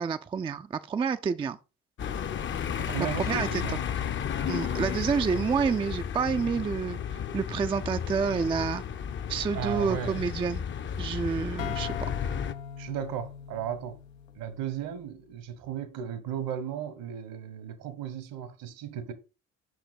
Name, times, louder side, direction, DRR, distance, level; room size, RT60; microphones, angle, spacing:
voice 1, 0.0-1.6 3.0-3.8 4.5-8.8 9.3-10.7 11.0-11.9, right 6 dB, 15° right, 0.3 m, -29 dB
sound 1, 2.0-12.5, left 8 dB, 30° left, 0.6 m, -33 dB
voice 2, 2.8-3.8 9.5-10.2 12.8-14.0 14.3-19.1, right 9 dB, 60° right, 1.1 m, -35 dB
sound 2, 11.6-15.2, left 8 dB, 85° left, 0.5 m, -41 dB
5.8 x 4.7 x 4.1 m
figure-of-eight pair, 50°, 38 cm